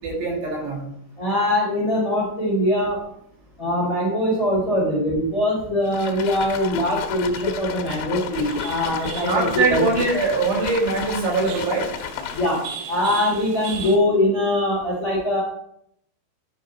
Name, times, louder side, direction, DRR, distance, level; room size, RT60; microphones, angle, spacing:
voice 1, 0.0-0.8 9.2-11.9, right 3 dB, 65° right, -3 dB, 3.9 m, -22 dB
voice 2, 1.2-3.0 3.6-9.8 12.3-12.6 12.9-15.4, left 1 dB, 25° left, -5 dB, 2.2 m, -22 dB
sound 1, 5.9-12.7, left 9 dB, 85° left, 3.3 m, -33 dB
sound 2, 8.3-14.0, right 7 dB, 90° right, 3.3 m, -38 dB
10.0 x 5.3 x 4.1 m, 0.72 s
omnidirectional pair, 5.5 m